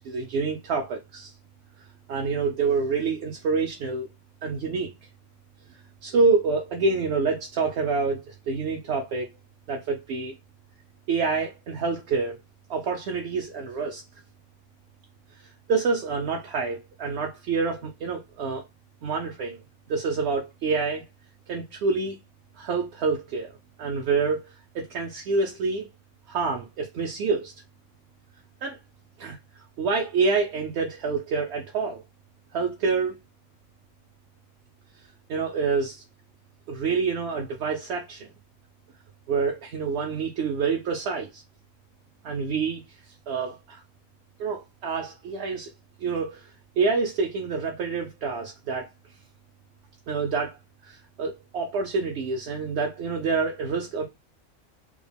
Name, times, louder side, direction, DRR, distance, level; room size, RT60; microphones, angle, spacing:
voice 1, 0.0-1.3 2.1-4.1 4.4-4.9 6.0-9.3 9.7-10.3 11.1-12.4 12.7-14.0 15.7-18.6 19.0-19.6 19.9-21.0 21.5-22.2 22.6-23.5 23.8-24.4 24.7-25.9 26.3-27.5 28.6-28.8 29.2-29.4 29.8-32.0 32.5-33.1 35.3-36.0 36.7-38.3 39.3-41.4 42.2-42.8 43.3-43.8 44.4-45.7 46.0-46.5 46.8-48.9 50.1-50.6 50.8-54.0, right 4 dB, 65° right, 0.8 m, -27 dB
3.5 x 2.3 x 3.4 m
omnidirectional pair, 1.4 m